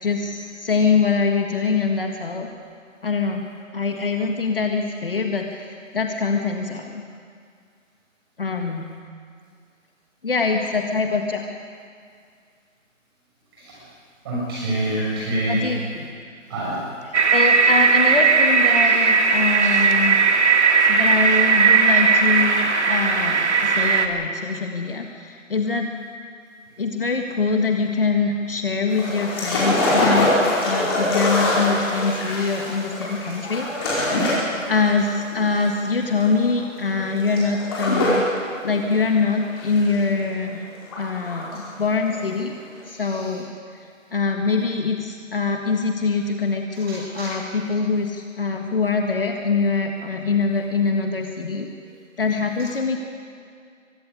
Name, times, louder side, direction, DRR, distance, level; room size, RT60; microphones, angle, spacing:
voice 1, 0.0-2.5 3.0-3.5 3.7-7.0 8.4-8.9 10.2-11.4 15.5-16.1 17.1-20.2 20.6-25.9 26.8-30.4 30.6-34.0 34.7-38.2 38.6-40.6 41.0-42.6 42.9-51.7 52.2-53.0, left 4 dB, 45° left, 3 dB, 1.8 m, -24 dB
voice 2, 14.2-15.7 16.5-16.8 33.9-34.1 46.9-47.3, right 1 dB, 20° right, -6 dB, 7.0 m, -26 dB
sound 1, 17.1-24.1, right 5 dB, 60° right, 2.1 m, -17 dB
sound 2, 28.9-38.3 38.6-40.4 40.8-41.7 42.0-42.1, left 1 dB, 20° left, 4.8 m, -24 dB
23.5 x 12.5 x 9.9 m, 2.2 s
hypercardioid pair, 170°, 39 cm